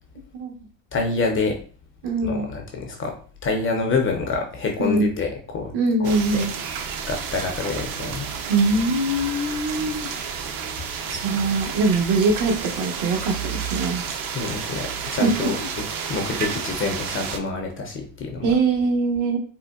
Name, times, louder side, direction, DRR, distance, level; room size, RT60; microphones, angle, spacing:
voice 1, 0.9-1.6 2.2-3.1 3.4-5.7 6.0-6.5 7.1-8.3 11.0-11.1 14.3-18.5, left 4 dB, 30° left, 2 dB, 0.4 m, -27 dB
voice 2, 2.0-2.5 4.8-5.1 5.7-6.5 8.5-10.1 11.1-14.0 15.1-15.5 18.4-19.4, right 3 dB, 70° right, 3 dB, 1.0 m, -22 dB
sound 1, 6.0-17.4, right 6 dB, 45° right, 0.5 m, -31 dB
3.6 x 2.1 x 2.2 m, 0.42 s
supercardioid pair, 100°, 48 cm